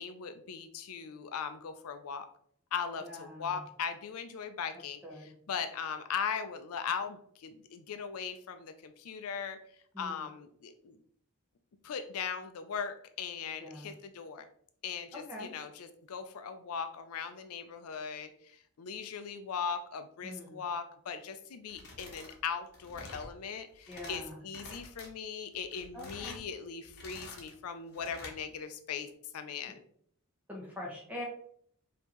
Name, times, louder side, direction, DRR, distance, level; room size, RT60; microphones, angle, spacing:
voice 1, 0.0-2.3 2.7-5.0 5.5-9.6 10.0-11.0 11.8-14.5 14.8-29.8, left 6 dB, 75° left, 9 dB, 0.4 m, -39 dB
voice 2, 3.0-3.6 4.7-5.3 9.9-10.3 13.6-13.9 15.3-15.5 20.2-20.6 23.9-24.4 25.9-26.4 30.5-31.3, left 1 dB, 5° right, -3 dB, 1.3 m, -44 dB
sound 1, 21.7-22.4 22.7-23.3 23.7-24.2 24.5-25.1 25.5-26.4 26.8-27.5 27.9-28.4, left 3 dB, 50° left, 1.1 m, -48 dB
5.3 x 2.8 x 3.0 m, 0.62 s
head